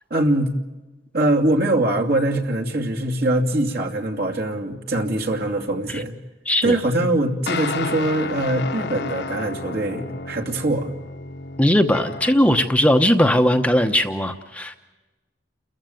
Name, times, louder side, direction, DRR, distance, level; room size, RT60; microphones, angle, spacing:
voice 1, 0.1-0.5 1.1-6.1 6.6-10.9, right 1 dB, 55° right, 1 dB, 2.7 m, -22 dB
sound 1, 7.5-12.6, left 3 dB, 60° left, 1.1 m, -31 dB
voice 2, 11.6-14.8, left 1 dB, 5° left, 6 dB, 0.9 m, -18 dB
29.5 x 14.5 x 9.3 m, 1.2 s
head